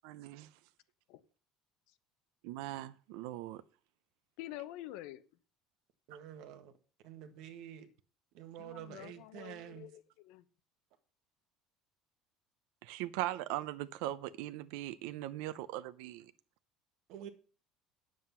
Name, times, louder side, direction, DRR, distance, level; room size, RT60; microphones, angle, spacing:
voice 1, 0.0-0.5 2.4-3.6 12.8-16.3, right 15 dB, 75° right, 0.6 m, -40 dB
voice 2, 4.4-5.2 8.6-10.4, left 15 dB, 70° left, 0.8 m, -47 dB
voice 3, 6.1-6.7 7.0-7.9 8.3-9.9 17.1-17.3, right 10 dB, 60° right, 1.5 m, -48 dB
9.5 x 7.7 x 5.6 m
cardioid pair, 175°, 0 cm